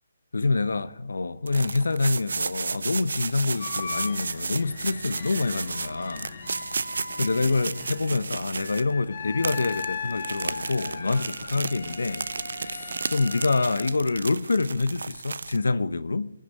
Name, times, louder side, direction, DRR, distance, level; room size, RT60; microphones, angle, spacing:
voice 1, 0.3-6.3 7.2-12.3 12.5-16.3, left 3 dB, 75° left, 0.8 m, -26 dB
sound 1, 1.5-9.0 9.4-15.6, right 4 dB, 70° right, 0.5 m, -33 dB
sound 2, 2.9-8.0, left 2 dB, 15° left, 3.5 m, -57 dB
sound 3, 3.6-13.9, left 5 dB, 55° left, 2.0 m, -38 dB
18.0 x 6.6 x 9.0 m
figure-of-eight pair, 145°, 0 cm